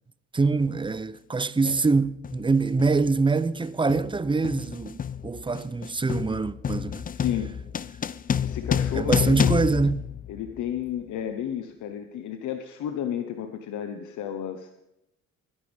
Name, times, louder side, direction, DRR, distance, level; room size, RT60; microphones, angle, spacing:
voice 1, 0.3-7.0 8.9-10.1, right 4 dB, 15° right, 0.6 m, -24 dB
sound 1, 0.6-0.8 1.7-2.0 2.2-10.8, left 8 dB, 30° left, 0.5 m, -29 dB
voice 2, 7.2-7.5 8.4-9.5 10.3-14.8, left 9 dB, 80° left, 1.1 m, -32 dB
21.0 x 11.0 x 3.5 m
cardioid pair, 90°, 30 cm